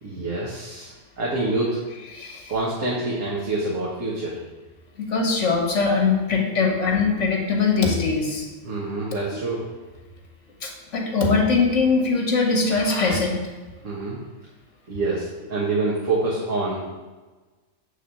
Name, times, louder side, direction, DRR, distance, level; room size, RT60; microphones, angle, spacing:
voice 1, 0.0-1.8 2.5-4.4 8.6-9.7 13.8-14.2 14.9-16.9, right 2 dB, 80° right, -6 dB, 1.8 m, -26 dB
voice 2, 2.1-2.5 5.0-8.5 10.6-13.4, left 4 dB, 65° left, 0 dB, 1.9 m, -21 dB
8.5 x 3.8 x 6.8 m, 1.3 s
omnidirectional pair, 1.3 m